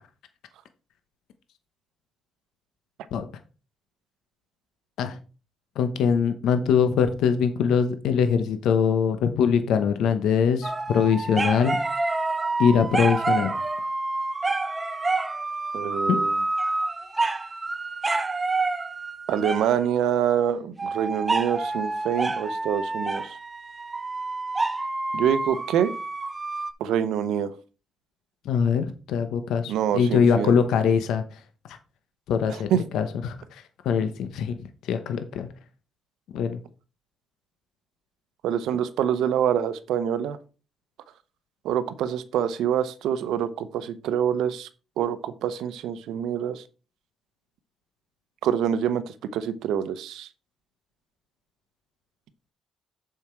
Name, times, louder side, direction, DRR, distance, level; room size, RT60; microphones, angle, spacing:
voice 1, 5.8-11.8 12.6-13.5 16.1-16.2 28.4-31.2 31.7-31.8 32.3-34.6 34.8-35.5 36.3-36.6, left 7 dB, 80° left, 8 dB, 0.9 m, -23 dB
sound 1, 10.6-19.9 20.8-26.7, right 3 dB, 20° right, 0.8 m, -28 dB
voice 2, 15.7-16.3 19.3-23.4 25.1-25.9 26.8-27.5 29.7-30.5 32.5-32.8 38.4-40.4 41.6-44.7 45.0-46.6 48.4-50.3, right 9 dB, 85° right, 13 dB, 0.7 m, -26 dB
7.3 x 5.7 x 4.5 m, 0.34 s
cardioid pair, 90°, 0 cm